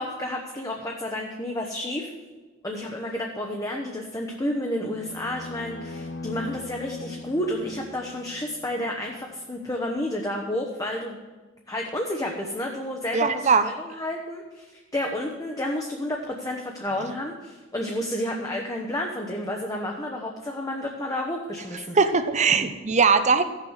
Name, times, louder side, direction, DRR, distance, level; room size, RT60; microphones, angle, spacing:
voice 1, 0.0-2.1 2.6-11.2 11.7-22.0, left 1 dB, 15° left, 1 dB, 1.0 m, -31 dB
sound 1, 4.9-9.1, left 3 dB, 50° left, 1.1 m, -39 dB
voice 2, 13.1-13.7 21.9-23.4, right 5 dB, 35° right, 10 dB, 0.7 m, -20 dB
15.0 x 6.5 x 6.4 m, 1.3 s
head